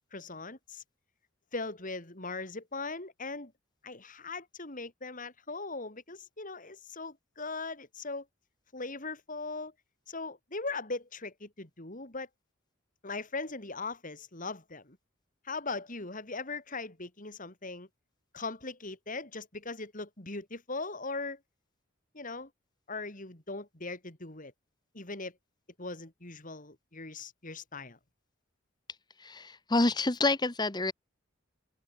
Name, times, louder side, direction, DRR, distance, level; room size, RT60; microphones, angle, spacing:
voice 1, 0.1-0.8 1.5-3.5 3.8-8.3 8.7-9.7 10.1-12.3 13.0-15.0 15.4-17.9 18.3-21.4 22.1-22.5 22.9-24.5 24.9-25.3 25.8-28.0, left 3 dB, 40° left, 3.7 m, -39 dB
voice 2, 29.2-30.9, left 2 dB, 20° left, 1.1 m, -28 dB
open air
head